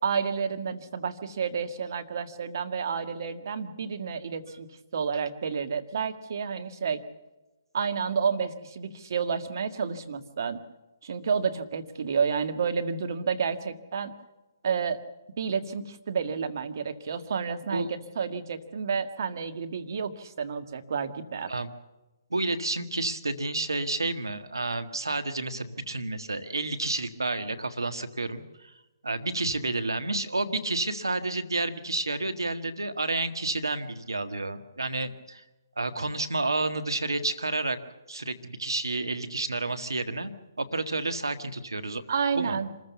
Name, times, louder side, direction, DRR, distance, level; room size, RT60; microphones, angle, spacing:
voice 1, 0.0-7.0 7.7-10.6 11.0-14.1 14.6-15.0 15.4-17.9 18.2-21.5 42.1-42.8, right 6 dB, 60° right, 8 dB, 1.8 m, -30 dB
voice 2, 22.3-28.7 29.0-35.4 35.8-37.8 38.1-40.3 40.6-42.1 42.4-42.6, right 2 dB, 90° right, 9 dB, 1.8 m, -30 dB
26.0 x 14.5 x 7.1 m, 1.1 s
figure-of-eight pair, 140°, 2 cm